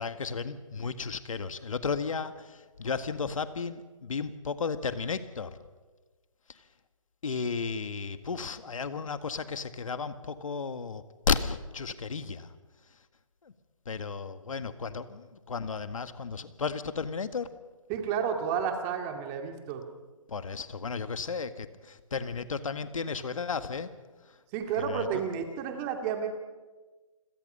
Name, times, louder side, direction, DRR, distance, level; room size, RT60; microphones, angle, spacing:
voice 1, 0.0-5.6 6.5-6.6 7.2-12.5 13.4-13.5 13.9-17.5 20.3-23.9 24.8-25.1, left 5 dB, 70° left, 10 dB, 1.8 m, -34 dB
voice 2, 17.9-19.8 24.5-26.3, right 7 dB, 20° right, 5 dB, 2.2 m, -31 dB
29.0 x 22.0 x 5.6 m, 1.3 s
hypercardioid pair, 155°, 18 cm